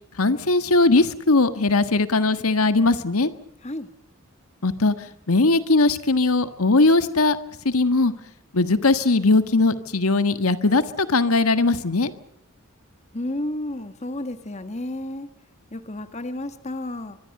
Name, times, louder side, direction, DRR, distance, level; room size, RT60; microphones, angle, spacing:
voice 1, 0.2-3.3 4.6-7.4 7.6-8.1 8.5-12.1, left 3 dB, 85° left, 11 dB, 1.6 m, -19 dB
voice 2, 13.1-15.3 15.7-17.2, left 1 dB, 30° left, 10 dB, 1.5 m, -31 dB
24.5 x 24.0 x 6.7 m, 0.68 s
head